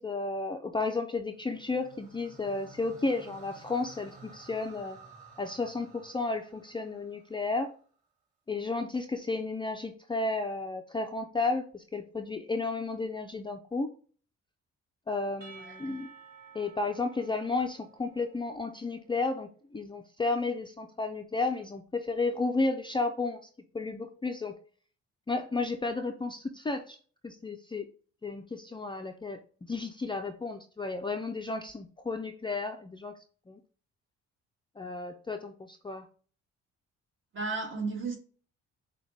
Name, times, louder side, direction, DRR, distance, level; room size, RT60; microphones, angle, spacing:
voice 1, 0.0-5.0 5.4-7.7 8.5-14.0 15.1-16.1 16.5-23.4 23.7-24.6 25.3-27.0 27.2-27.9 28.2-29.4 29.7-33.2 33.5-33.6 34.8-36.1, left 3 dB, 15° left, 0.4 m, -33 dB
sound 1, 1.4-7.7, right 3 dB, 25° right, 2.2 m, -54 dB
Percussion / Church bell, 15.4-19.1, right 5 dB, 60° right, 1.6 m, -53 dB
voice 2, 37.3-38.2, right 4 dB, 40° right, 1.6 m, -34 dB
6.2 x 2.3 x 3.4 m
cardioid pair, 90°, 30 cm